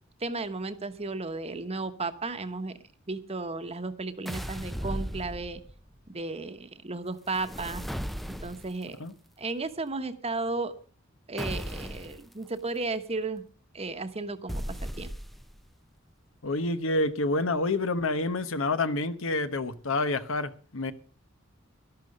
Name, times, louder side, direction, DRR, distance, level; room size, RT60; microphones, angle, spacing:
voice 1, 0.2-2.8 3.1-5.6 6.1-7.8 8.3-9.0 9.4-10.7 11.3-13.4 13.7-15.1, right 3 dB, 30° right, 1.1 m, -34 dB
sound 1, 4.2-5.9 7.3-8.8 11.4-12.2 14.5-15.6, equal, ahead, 0.5 m, -36 dB
voice 2, 16.4-20.9, left 2 dB, 75° left, 1.1 m, -28 dB
12.5 x 11.5 x 5.3 m
head